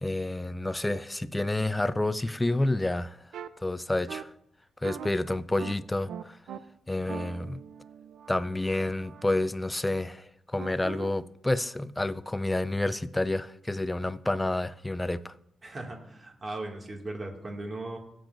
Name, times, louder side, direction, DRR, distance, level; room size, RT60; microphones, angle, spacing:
voice 1, 0.0-3.3 3.6-4.3 4.8-6.4 6.9-7.6 8.3-15.3, left 2 dB, 15° left, 0.4 m, -29 dB
sound 1, 3.3-3.5 4.1-4.2 4.8-5.1 5.6-5.7 6.1-6.6 7.1-9.3 10.6-11.1, right 8 dB, 85° right, 0.5 m, -41 dB
voice 2, 15.6-18.0, right 2 dB, 35° right, 2.2 m, -38 dB
16.5 x 7.7 x 2.6 m
cardioid pair, 90°, 0 cm